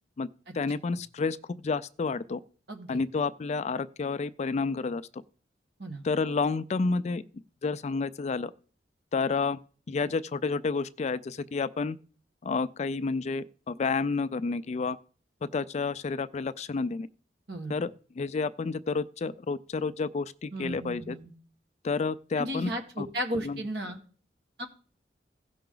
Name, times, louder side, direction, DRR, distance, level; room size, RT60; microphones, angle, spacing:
voice 1, 0.5-2.4 2.9-5.0 6.0-7.2 7.6-8.5 9.1-9.6 9.9-12.0 12.4-15.0 15.5-17.1 17.7-17.9 18.2-21.2 21.8-22.7 23.0-23.1 23.4-23.6, left 4 dB, 40° left, 0.3 m, -30 dB
voice 2, 2.7-3.0 5.8-6.1 17.5-17.7 20.5-21.3 22.4-24.0 24.6-24.7, equal, 70° right, 1.8 m, -34 dB
16.5 x 5.6 x 3.9 m
head